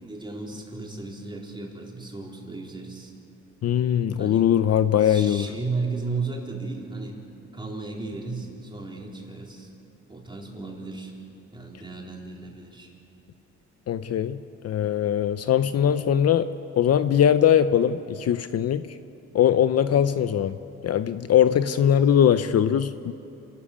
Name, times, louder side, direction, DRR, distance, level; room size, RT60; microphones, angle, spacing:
voice 1, 0.0-3.1 4.2-4.5 5.0-7.2 7.5-9.7 10.1-11.1 11.5-12.9, right 3 dB, 15° right, -2 dB, 4.2 m, -34 dB
voice 2, 3.6-5.5 13.9-16.5 16.8-18.9 19.3-20.6 20.8-23.1, left 9 dB, 55° left, 12 dB, 0.7 m, -21 dB
27.5 x 13.0 x 8.6 m, 2.8 s
cardioid pair, 90°, 30 cm